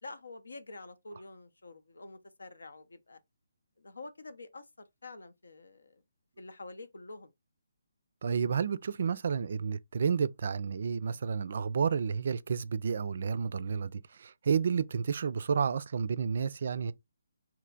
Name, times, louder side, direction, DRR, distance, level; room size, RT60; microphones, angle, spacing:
voice 1, 0.0-3.2 3.8-6.0 6.4-7.3 13.6-13.8, left 3 dB, 85° left, 0.7 m, -48 dB
voice 2, 8.2-16.9, right 6 dB, 55° right, 0.3 m, -31 dB
3.3 x 2.9 x 3.8 m
hypercardioid pair, 155°, 0 cm